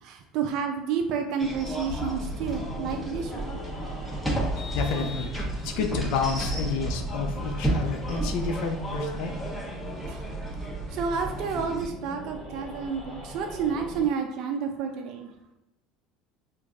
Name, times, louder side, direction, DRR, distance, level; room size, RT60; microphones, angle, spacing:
voice 1, 0.0-3.6 10.1-10.4 10.9-15.3, right 6 dB, 60° right, 4 dB, 0.5 m, -30 dB
sound 1, 1.4-11.9, right 1 dB, 5° left, 1.1 m, -32 dB
sound 2, 1.9-14.1, equal, 30° left, 1.3 m, -40 dB
Vehicle horn car horn honking, 4.6-6.0, left 5 dB, 50° left, 1.1 m, -43 dB
voice 2, 4.7-5.3 5.6-9.5, left 5 dB, 70° left, 5 dB, 0.5 m, -30 dB
4.5 x 2.6 x 2.4 m, 0.95 s
supercardioid pair, 90°, 0 cm